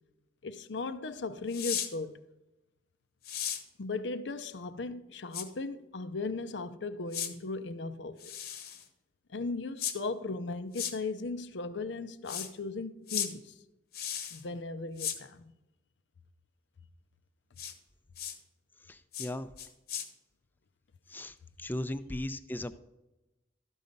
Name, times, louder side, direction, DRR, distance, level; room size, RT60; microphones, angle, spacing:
voice 1, 0.4-2.2 3.8-8.3 9.3-13.6 14.3-15.5, left 3 dB, 80° left, 0.6 m, -37 dB
sound 1, 1.5-1.9 3.2-3.6 5.3-5.5 7.1-7.3 8.2-8.8 9.8-10.0 10.7-10.9 12.3-12.5 13.1-13.3 13.9-14.4 15.0-15.2 17.6-17.7 18.2-18.4 19.1-19.3 19.6-20.1, left 9 dB, 55° left, 1.0 m, -35 dB
voice 2, 18.9-19.5 21.1-22.8, left 1 dB, 10° left, 0.3 m, -37 dB
13.0 x 5.5 x 5.2 m
head